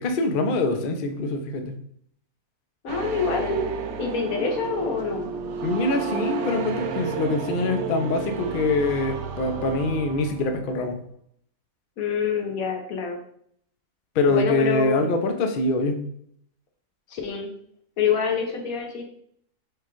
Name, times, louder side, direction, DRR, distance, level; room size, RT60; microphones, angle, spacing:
voice 1, 0.0-1.7 5.6-10.9 14.1-16.0, left 2 dB, 50° left, 5 dB, 0.6 m, -24 dB
voice 2, 2.8-3.7 4.0-5.3 12.0-13.2 14.3-15.1 17.1-17.5 18.0-19.0, left 5 dB, 90° left, 2 dB, 1.3 m, -26 dB
sound 1, 2.9-10.8, right 5 dB, 85° right, 1.1 m, -32 dB
4.8 x 2.3 x 4.4 m, 0.65 s
omnidirectional pair, 1.4 m